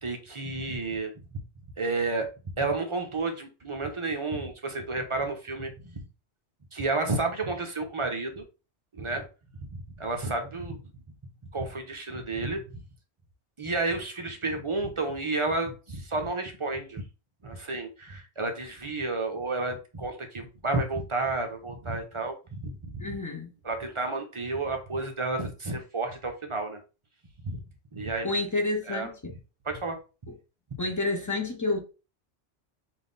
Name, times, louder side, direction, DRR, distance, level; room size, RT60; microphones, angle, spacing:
voice 1, 0.0-1.1 1.8-2.3 2.5-6.1 6.7-8.4 8.9-9.2 9.6-10.8 11.5-12.8 13.6-17.0 17.4-22.4 22.6-23.1 23.6-26.8 27.4-27.6 27.9-28.3 28.9-29.1 29.6-30.0, right 3 dB, 35° right, 0.5 m, -31 dB
voice 2, 23.0-23.5 28.2-29.3 30.3-30.4 30.8-31.8, left 2 dB, 25° left, 0.4 m, -29 dB
3.5 x 2.6 x 3.8 m
omnidirectional pair, 1.2 m